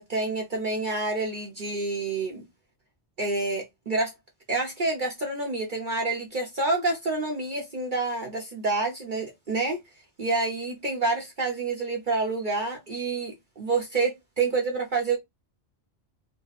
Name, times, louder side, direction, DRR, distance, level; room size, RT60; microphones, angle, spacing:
voice 1, 0.0-2.4 3.2-4.1 4.5-9.8 10.2-15.2, right 3 dB, 50° right, 1.0 m, -28 dB
3.5 x 2.1 x 4.0 m
omnidirectional pair, 1.1 m